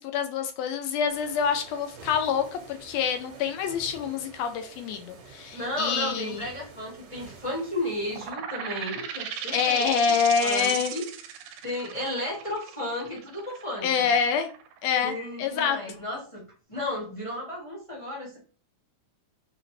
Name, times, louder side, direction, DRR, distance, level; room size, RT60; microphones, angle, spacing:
voice 1, 0.0-6.4 9.5-10.9 13.8-14.5 14.8-15.1 15.4-15.8, left 7 dB, 75° left, 7 dB, 1.6 m, -26 dB
sound 1, 1.1-8.3, right 4 dB, 60° right, 1.9 m, -49 dB
voice 2, 5.5-11.1 11.6-14.1 15.0-16.4 16.7-18.4, left 1 dB, 25° left, -4 dB, 0.6 m, -33 dB
sound 2, 8.1-15.4, right 9 dB, 85° right, 2.0 m, -37 dB
6.4 x 2.5 x 3.2 m, 0.38 s
omnidirectional pair, 3.4 m